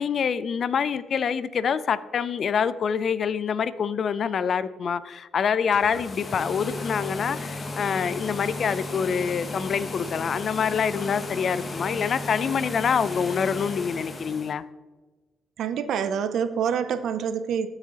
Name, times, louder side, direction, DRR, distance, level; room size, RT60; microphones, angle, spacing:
voice 1, 0.0-14.6, left 7 dB, 55° left, 15 dB, 0.4 m, -26 dB
sound 1, 5.6-14.5, left 2 dB, 35° left, 0.9 m, -35 dB
voice 2, 15.6-17.7, right 7 dB, 70° right, 12 dB, 0.4 m, -26 dB
14.5 x 4.8 x 2.9 m, 1.2 s
cardioid pair, 90°, 0 cm